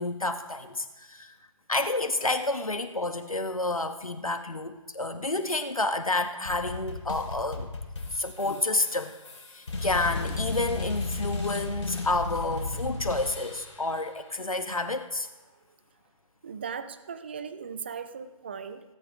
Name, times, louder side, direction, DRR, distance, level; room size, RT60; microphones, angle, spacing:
voice 1, 0.0-1.3 1.7-7.7 8.1-9.1 9.5-15.3, left 2 dB, 75° left, 8 dB, 1.5 m, -29 dB
sound 1, 6.4-13.8, left 3 dB, 55° left, 5.0 m, -34 dB
voice 2, 16.4-18.8, right 6 dB, 20° right, 11 dB, 0.5 m, -38 dB
17.0 x 16.0 x 3.8 m, 1.1 s
figure-of-eight pair, 150°, 18 cm